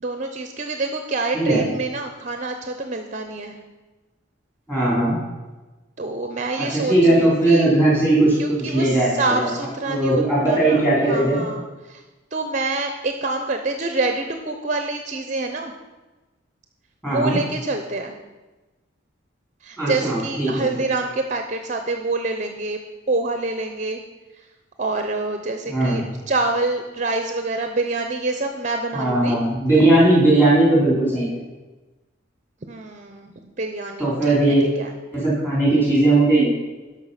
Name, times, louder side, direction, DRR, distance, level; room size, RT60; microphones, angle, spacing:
voice 1, 0.0-3.6 6.0-7.7 8.4-10.8 11.1-12.0 12.3-15.7 17.0-18.2 19.6-22.8 23.1-24.0 24.4-24.5 24.8-29.4 32.7-34.9, right 3 dB, 35° right, 5 dB, 0.6 m, -26 dB
voice 2, 1.3-1.6 4.7-5.1 6.5-9.5 9.9-11.4 17.0-17.4 19.8-20.8 25.7-26.0 28.9-31.4 34.0-34.6 35.1-36.5, right 2 dB, 10° left, -7 dB, 3.9 m, -18 dB
12.5 x 5.5 x 5.7 m, 1.2 s
head